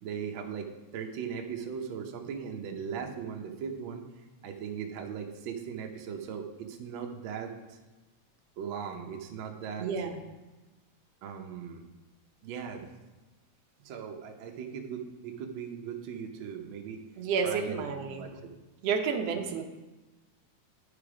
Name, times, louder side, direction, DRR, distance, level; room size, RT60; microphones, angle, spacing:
voice 1, 0.0-4.0 4.4-7.8 8.6-9.9 11.2-11.8 12.4-12.9 13.8-17.0 17.4-18.4, right 7 dB, 85° right, 3 dB, 1.0 m, -38 dB
voice 2, 9.8-10.2 17.2-18.3 18.8-19.6, right 5 dB, 70° right, 4 dB, 1.7 m, -30 dB
11.5 x 5.2 x 4.9 m, 1.1 s
omnidirectional pair, 3.3 m